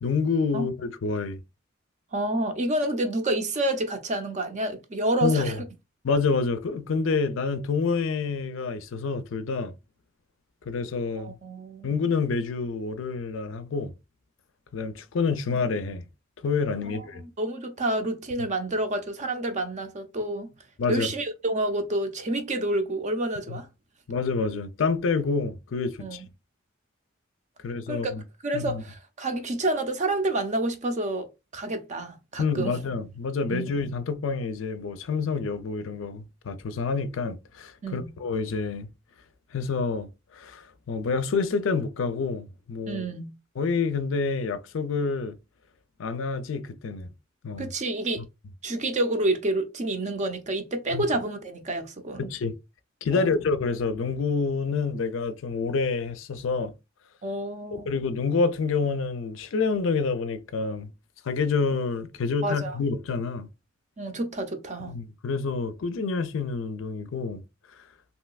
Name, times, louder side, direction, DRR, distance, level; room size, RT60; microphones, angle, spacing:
voice 1, 0.0-1.4 5.2-5.6 6.0-9.7 10.7-11.3 11.8-13.9 14.7-16.0 16.4-17.2 20.8-21.1 23.5-23.6 24.1-26.2 27.6-28.2 28.5-28.8 32.4-38.9 39.5-43.0 43.6-45.4 46.0-47.1 47.4-47.7 50.9-51.0 52.2-52.5 53.0-56.7 57.7-60.9 61.2-63.5 64.8-67.4, left 4 dB, 70° left, 0.4 m, -28 dB
voice 2, 2.1-5.5 11.2-11.9 16.8-20.5 20.9-23.7 26.0-26.2 27.9-28.1 28.4-31.3 31.5-32.8 33.5-33.7 37.8-38.1 42.9-43.3 47.6-48.2 48.6-52.3 53.2-53.3 57.2-57.9 62.4-62.8 64.0-65.0, right 1 dB, 35° right, 0.6 m, -29 dB
3.1 x 2.8 x 2.3 m
head